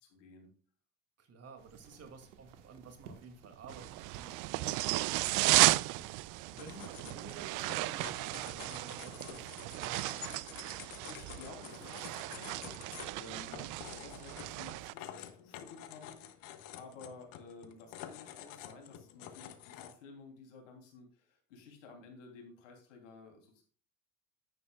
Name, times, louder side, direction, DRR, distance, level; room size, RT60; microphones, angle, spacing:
voice 1, 0.1-0.5 4.5-4.8 10.7-13.6 13.9-23.6, left 4 dB, 80° left, 3 dB, 3.2 m, -53 dB
voice 2, 1.2-10.4 13.4-13.7, right 4 dB, 40° right, 6 dB, 2.4 m, -53 dB
sound 1, 1.6-9.6, right 7 dB, 80° right, 1.5 m, -57 dB
sound 2, 3.7-14.9, right 20 dB, 55° right, 0.5 m, -34 dB
sound 3, 6.6-19.9, left 11 dB, 60° left, 1.3 m, -49 dB
10.0 x 9.4 x 2.4 m, 0.42 s
hypercardioid pair, 75°, 37 cm